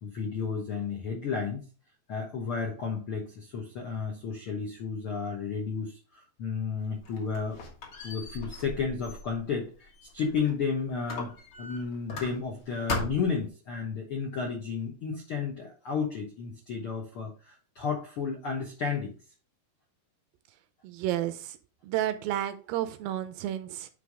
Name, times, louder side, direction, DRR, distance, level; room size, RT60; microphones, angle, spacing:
voice 1, 0.0-1.6 2.1-7.6 8.0-11.3 11.6-19.1, left 5 dB, 70° left, 0 dB, 1.2 m, -32 dB
Squeak, 6.8-10.6 11.1-12.6 12.9-13.5, left 2 dB, 50° left, 1.8 m, -38 dB
voice 2, 20.8-21.6 21.8-23.9, right 12 dB, 80° right, 11 dB, 2.2 m, -31 dB
9.3 x 3.5 x 4.7 m, 0.38 s
omnidirectional pair, 4.3 m